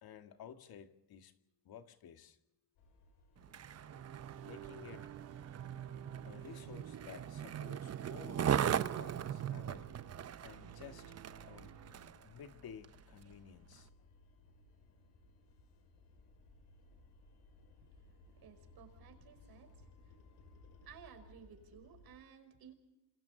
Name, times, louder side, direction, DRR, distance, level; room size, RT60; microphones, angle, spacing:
voice 1, 0.0-1.3 1.6-2.4 4.4-5.1 6.2-9.9 10.4-11.1 11.5-11.8 12.2-13.9, left 7 dB, 60° left, 2.0 m, -53 dB
sound 1, 2.8-9.9 10.2-22.2, left 2 dB, 90° left, 5.7 m, -63 dB
Skateboard, 3.4-12.2 12.8-13.0, right 9 dB, 40° right, 0.8 m, -39 dB
sound 2, 3.9-12.1, right 9 dB, 85° right, 3.0 m, -52 dB
voice 2, 18.3-19.9 20.8-22.7, right 8 dB, 65° right, 5.3 m, -57 dB
28.0 x 27.5 x 4.0 m
cardioid pair, 125°, 41 cm